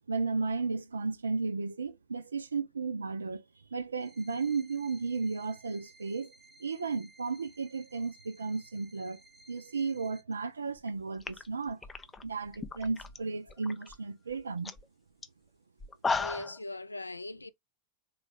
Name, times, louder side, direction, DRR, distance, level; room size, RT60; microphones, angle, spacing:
voice 1, 0.1-3.4 3.7-6.3 6.6-9.2 9.5-11.8 12.2-14.7, right 4 dB, 75° right, 0.5 m, -34 dB
sound 1, 4.0-10.2, right 2 dB, 5° right, 1.0 m, -59 dB
sound 2, 10.8-10.9 11.2-13.2 13.5-14.0 14.3-14.4 14.6-14.8 15.2-15.3 15.8-16.6, left 4 dB, 15° left, 0.4 m, -35 dB
voice 2, 16.1-17.5, left 2 dB, 80° left, 0.3 m, -40 dB
3.8 x 2.4 x 3.4 m
figure-of-eight pair, 90°, 0 cm